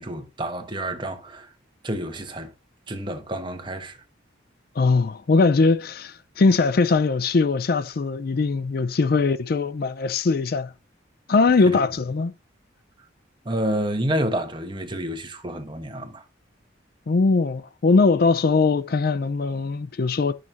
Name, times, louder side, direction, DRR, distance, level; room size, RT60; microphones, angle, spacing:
voice 1, 0.0-1.5 1.8-2.5 2.9-4.0 11.6-11.8 13.4-16.2, right 1 dB, 25° right, 1.2 m, -29 dB
voice 2, 4.8-10.7 11.3-12.3 17.1-20.3, left 4 dB, 50° left, 0.4 m, -21 dB
10.5 x 6.4 x 2.8 m
head